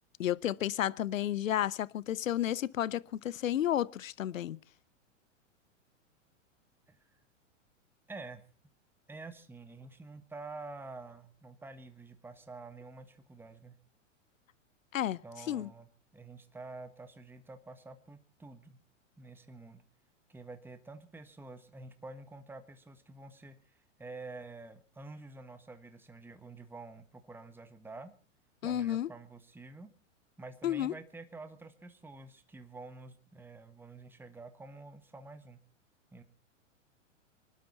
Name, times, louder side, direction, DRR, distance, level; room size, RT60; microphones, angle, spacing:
voice 1, 0.2-4.6 14.9-15.2 15.5-15.7 28.6-29.1 30.6-30.9, left 11 dB, 80° left, 0.7 m, -32 dB
voice 2, 6.9-7.2 8.1-8.4 9.1-13.8 15.2-18.8 19.2-19.8 20.3-28.1 28.6-29.9 30.4-35.6 36.1-36.2, right 3 dB, 5° right, 1.4 m, -48 dB
26.0 x 12.0 x 4.2 m
hypercardioid pair, 110°, 39 cm